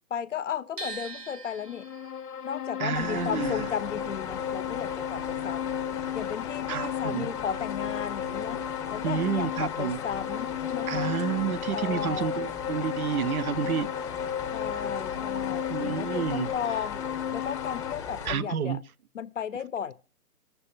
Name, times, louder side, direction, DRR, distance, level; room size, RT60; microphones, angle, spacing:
voice 1, 0.1-1.9 2.4-5.6 6.1-8.6 8.9-11.1 11.7-12.4 14.5-17.0 17.3-18.8 19.1-19.9, left 8 dB, 55° left, 0.6 m, -35 dB
sound 1, 0.8-6.8 7.1-8.4, right 3 dB, 85° right, 1.1 m, -45 dB
sound 2, 1.6-17.9, left 9 dB, 85° left, 0.7 m, -34 dB
voice 2, 2.8-3.7 6.7-7.3 9.0-10.0 10.9-13.9 15.7-16.5 18.3-18.8, right 8 dB, 70° right, 0.5 m, -30 dB
sound 3, 2.9-18.3, left 7 dB, 20° left, 0.8 m, -39 dB
19.5 x 6.8 x 2.7 m
figure-of-eight pair, 140°, 46 cm